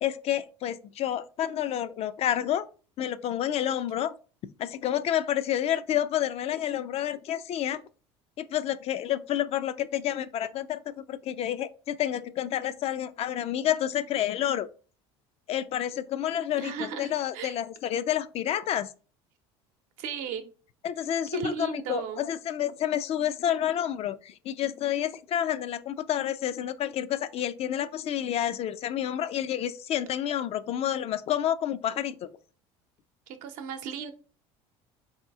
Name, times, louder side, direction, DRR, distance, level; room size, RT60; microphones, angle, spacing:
voice 1, 0.0-2.7 3.0-4.1 4.6-7.8 8.4-14.7 15.5-18.9 20.8-32.3, left 11 dB, 45° left, 0.4 m, -29 dB
voice 2, 16.5-17.6 20.0-20.4 21.3-22.2 33.3-34.1, right 6 dB, 70° right, 0.8 m, -35 dB
3.9 x 2.8 x 3.5 m
hypercardioid pair, 80°, 14 cm